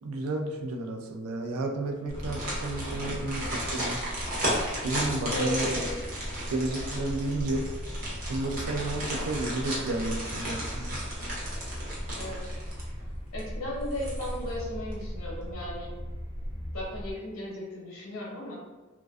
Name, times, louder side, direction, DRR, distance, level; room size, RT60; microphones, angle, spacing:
voice 1, 0.0-4.0 4.8-5.8 6.5-7.7 8.3-11.0, right 2 dB, 70° right, 4 dB, 0.3 m, -32 dB
sound 1, 2.1-17.1, equal, 20° left, 0.4 m, -38 dB
sound 2, 2.1-13.0 13.4-13.5 13.9-14.6 14.9-15.0, right 1 dB, 40° right, 0.7 m, -34 dB
voice 2, 5.3-6.0 12.1-12.5 13.3-15.9 16.7-18.5, left 1 dB, 65° left, -4 dB, 0.7 m, -36 dB
2.4 x 2.2 x 2.3 m, 1.3 s
head